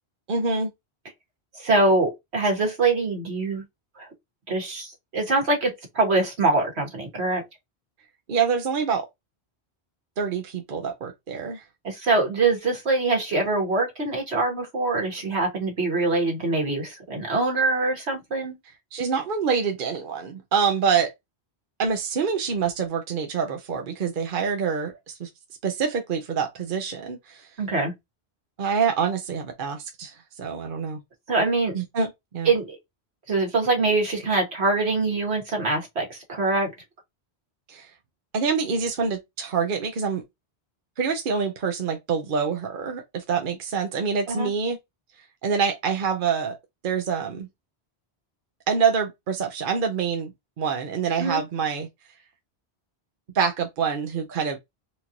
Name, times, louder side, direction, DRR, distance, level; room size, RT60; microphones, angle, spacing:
voice 1, 0.3-0.7 8.3-9.1 10.2-11.6 18.9-21.1 21.8-25.3 25.6-27.5 28.6-31.0 31.7-32.5 37.7-37.9 38.3-40.2 41.0-44.8 45.4-46.6 46.8-47.5 48.7-51.9 53.3-54.6, right 6 dB, 55° right, 0.9 m, -26 dB
voice 2, 1.6-3.6 4.0-4.1 4.5-7.4 11.8-18.6 27.6-27.9 31.3-31.8 32.5-32.8 33.3-36.7 44.3-44.5 51.2-51.4, right 3 dB, 75° right, 1.8 m, -24 dB
4.4 x 2.5 x 2.9 m
omnidirectional pair, 1.1 m